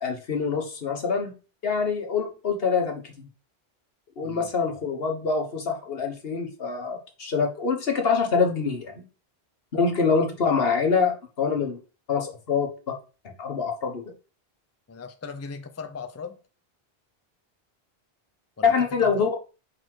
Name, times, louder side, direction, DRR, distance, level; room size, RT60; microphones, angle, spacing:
voice 1, 0.0-1.3 1.6-3.3 4.2-9.1 9.7-11.8 12.1-12.9 13.4-14.0 18.6-19.3, left 5 dB, 70° left, 1.5 m, -25 dB
voice 2, 14.9-16.4 18.6-18.7 19.0-19.3, left 4 dB, 20° left, 0.4 m, -38 dB
4.9 x 4.2 x 4.5 m
omnidirectional pair, 1.0 m